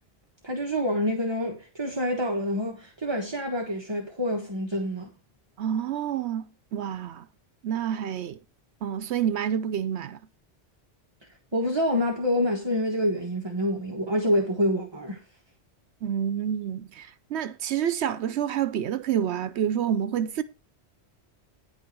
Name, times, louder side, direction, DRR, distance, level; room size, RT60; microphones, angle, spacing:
voice 1, 0.4-5.1 11.5-15.2, equal, 25° right, 1.4 m, -27 dB
voice 2, 5.6-7.3 7.6-8.4 8.8-10.2 16.0-20.4, right 9 dB, 75° right, 0.9 m, -28 dB
10.0 x 6.6 x 4.6 m
omnidirectional pair, 1.1 m